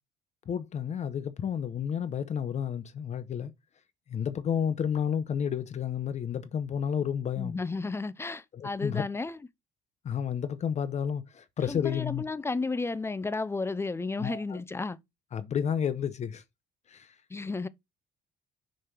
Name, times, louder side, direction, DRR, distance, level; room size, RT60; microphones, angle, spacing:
voice 1, 0.5-3.5 4.1-7.5 8.5-9.1 10.0-12.2 14.2-14.6 15.3-16.4 16.9-17.1, left 8 dB, 40° left, 0.8 m, -31 dB
voice 2, 7.4-9.4 11.7-15.0 17.3-17.7, left 3 dB, 15° left, 0.5 m, -33 dB
6.4 x 3.4 x 6.0 m
cardioid pair, 110°, 17 cm